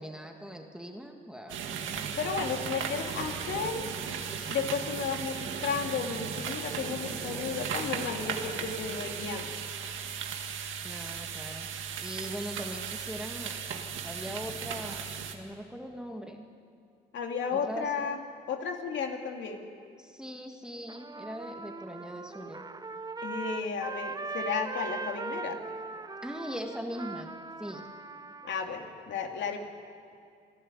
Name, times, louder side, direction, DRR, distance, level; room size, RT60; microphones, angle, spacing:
voice 1, 0.0-1.6 10.8-11.7 12.0-15.0 15.3-16.4 17.5-18.1 20.0-22.7 26.2-27.8, equal, 5° right, 3 dB, 1.8 m, -40 dB
sound 1, 1.5-15.3, right 7 dB, 75° right, 1.9 m, -36 dB
voice 2, 2.2-3.9 4.5-9.6 17.1-18.2 18.5-19.7 23.2-25.6 28.4-29.7, left 6 dB, 70° left, 3 dB, 2.6 m, -33 dB
Gunshot gunfire, 3.1-4.3, right 5 dB, 60° right, 2.3 m, -46 dB
Trumpet, 20.9-28.5, right 3 dB, 20° right, 0.9 m, -40 dB
25.5 x 12.0 x 10.0 m, 2.3 s
cardioid pair, 90°, 20 cm